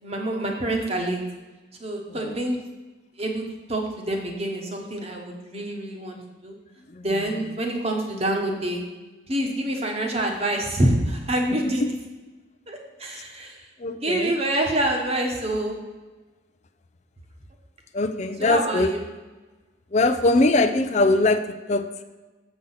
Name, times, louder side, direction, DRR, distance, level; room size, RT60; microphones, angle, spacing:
voice 1, 0.0-1.2 1.8-2.6 3.2-3.4 3.7-6.5 7.0-8.8 9.3-11.8 12.7-13.7 14.0-15.8 18.4-19.0, right 1 dB, 30° right, 1 dB, 1.3 m, -26 dB
voice 2, 11.5-11.9 13.8-14.4 17.9-18.9 19.9-22.0, left 2 dB, 35° left, 9 dB, 0.5 m, -22 dB
7.4 x 6.2 x 5.7 m, 1.2 s
head